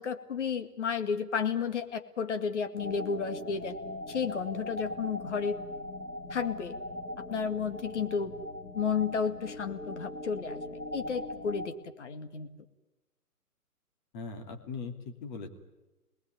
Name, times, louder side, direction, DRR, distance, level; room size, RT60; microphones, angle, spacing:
voice 1, 0.0-3.8 4.1-5.6 6.3-6.8 7.3-8.3 8.7-10.6 10.9-12.5, left 6 dB, 50° left, 8 dB, 2.1 m, -32 dB
sound 1, 2.8-11.7, left 1 dB, 75° left, 2.7 m, -40 dB
voice 2, 14.1-15.5, left 4 dB, 30° left, 4 dB, 2.9 m, -40 dB
28.0 x 20.0 x 9.6 m, 1.1 s
figure-of-eight pair, 130°, 46 cm